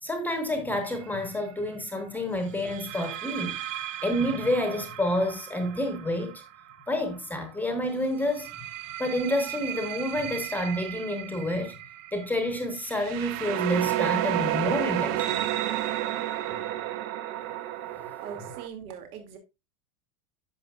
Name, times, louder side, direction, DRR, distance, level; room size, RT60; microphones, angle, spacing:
voice 1, 0.0-3.6 4.0-6.4 6.9-8.5 9.0-11.8 12.1-15.5, left 1 dB, 5° left, 1.0 m, -29 dB
sound 1, 0.8-1.1 2.6-7.4 8.2-18.7, right 13 dB, 60° right, 1.0 m, -32 dB
voice 2, 18.2-19.4, right 7 dB, 85° right, 2.5 m, -41 dB
10.5 x 6.8 x 2.4 m
supercardioid pair, 160°, 43 cm